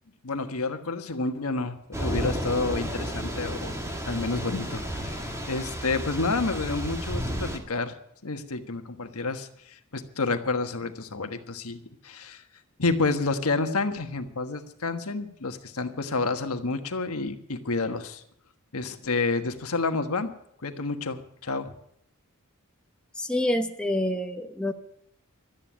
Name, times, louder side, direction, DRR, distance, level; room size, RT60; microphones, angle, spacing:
voice 1, 0.2-3.7 4.0-7.9 8.2-12.4 12.8-18.2 18.7-20.3 20.6-21.7, left 3 dB, 75° left, 7 dB, 1.4 m, -29 dB
Thunder / Rain, 1.9-7.6, equal, 15° right, 1.8 m, -32 dB
voice 2, 23.2-24.7, left 1 dB, 5° left, 3 dB, 0.8 m, -27 dB
13.0 x 9.4 x 8.8 m, 0.70 s
head